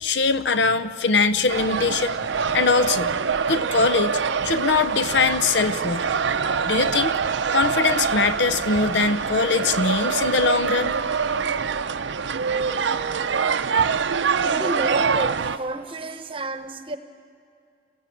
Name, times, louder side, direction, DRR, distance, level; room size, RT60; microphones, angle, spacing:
voice 1, 0.0-2.2 2.5-3.1 3.5-6.1 6.7-7.1 7.5-11.0, left 4 dB, 75° left, 13 dB, 0.7 m, -22 dB
sound 1, 1.5-15.6, right 6 dB, 85° right, 0.6 m, -24 dB
voice 2, 14.4-17.0, right 2 dB, 30° right, 9 dB, 1.0 m, -31 dB
26.5 x 15.5 x 8.5 m, 2.3 s
head